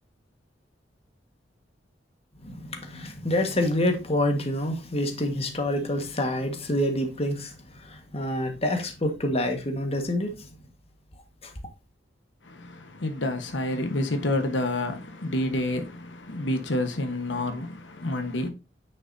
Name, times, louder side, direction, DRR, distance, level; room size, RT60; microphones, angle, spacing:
voice 1, 2.4-10.5 11.4-11.5, left 1 dB, 35° left, 1.6 m, -27 dB
voice 2, 12.4-18.5, left 1 dB, 85° left, 1.3 m, -29 dB
9.6 x 6.0 x 2.7 m
head